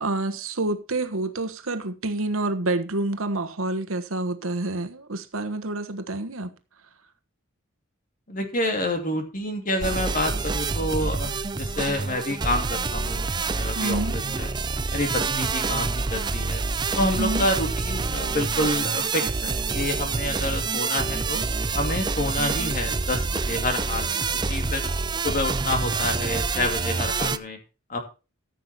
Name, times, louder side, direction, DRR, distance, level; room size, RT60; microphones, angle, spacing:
voice 1, 0.0-6.5 13.7-14.3 17.2-17.5, right 2 dB, 85° right, 1.3 m, -28 dB
voice 2, 8.3-13.3 13.5-14.5 14.9-16.6 17.0-21.4 21.7-24.2 24.5-24.8 25.2-27.6 27.9-28.0, left 1 dB, 40° left, 2.6 m, -28 dB
sound 1, 9.8-27.4, right 4 dB, 20° right, 0.5 m, -27 dB
14.0 x 6.9 x 4.3 m
head